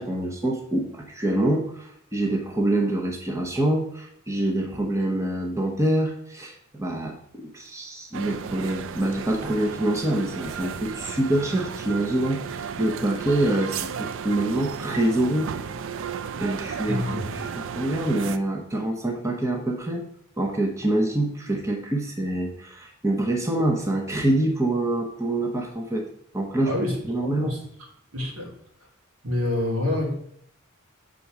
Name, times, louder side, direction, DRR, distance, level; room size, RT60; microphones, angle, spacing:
voice 1, 0.0-15.5 16.4-20.1 20.4-26.1 26.3-27.6, right 1 dB, 15° right, 1 dB, 0.8 m, -26 dB
sound 1, 8.1-18.4, right 7 dB, 60° right, 0.4 m, -34 dB
voice 2, 16.9-17.3 26.7-27.0 27.2-27.6 28.1-28.5 29.2-30.1, left 1 dB, 80° right, 0 dB, 2.3 m, -27 dB
6.8 x 3.8 x 6.0 m, 0.67 s
head